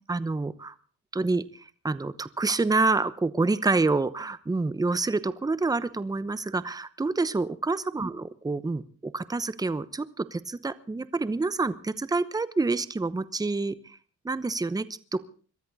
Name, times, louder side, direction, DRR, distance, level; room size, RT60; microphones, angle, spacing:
voice 1, 0.1-0.7 1.1-1.4 1.8-8.1 8.4-14.0 14.2-15.3, right 3 dB, 10° right, 15 dB, 0.9 m, -27 dB
22.5 x 13.0 x 4.1 m, 0.40 s
cardioid pair, 90°, 30 cm